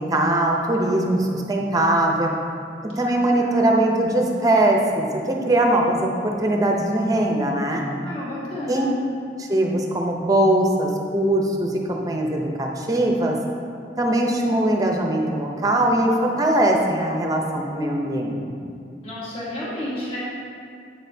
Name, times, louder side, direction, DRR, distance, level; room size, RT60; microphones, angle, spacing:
voice 1, 0.0-2.3 3.0-7.9 8.7-8.9 9.4-13.4 14.0-18.7, right 1 dB, 20° right, 1 dB, 0.6 m, -21 dB
voice 2, 2.9-3.6 8.0-8.9 19.0-20.2, left 1 dB, 35° left, -9 dB, 1.5 m, -32 dB
8.2 x 6.4 x 2.7 m, 2.4 s
head